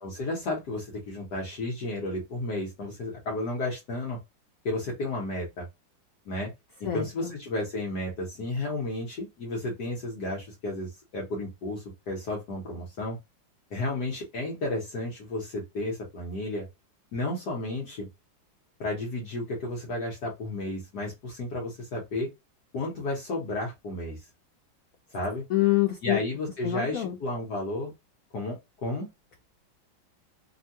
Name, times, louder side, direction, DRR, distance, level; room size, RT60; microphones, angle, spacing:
voice 1, 0.0-4.2 4.6-5.7 6.3-6.5 6.8-13.2 13.7-16.7 17.1-18.1 18.8-22.3 22.7-24.3 25.1-25.4 26.0-27.9 28.3-29.1, left 2 dB, 60° left, 1.3 m, -32 dB
voice 2, 6.8-7.3 25.5-26.2 26.6-27.2, left 15 dB, 85° left, 0.7 m, -26 dB
3.5 x 2.2 x 2.7 m
omnidirectional pair, 2.2 m